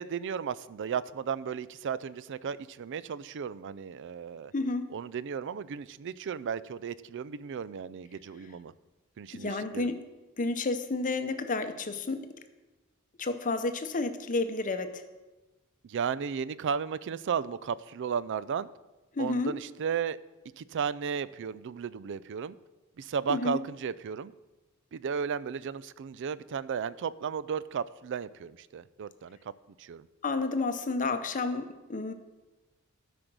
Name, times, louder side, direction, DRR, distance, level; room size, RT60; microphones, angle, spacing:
voice 1, 0.0-4.5 4.9-8.7 9.2-9.9 15.8-18.7 19.2-20.2 20.6-22.6 23.0-24.3 24.9-29.4 29.8-30.1, right 6 dB, 60° right, 0.4 m, -34 dB
voice 2, 4.5-4.9 9.3-10.0 10.4-12.3 13.2-15.0 19.1-19.5 23.3-23.6 30.2-32.1, left 3 dB, 40° left, 0.7 m, -31 dB
12.5 x 5.1 x 6.1 m
head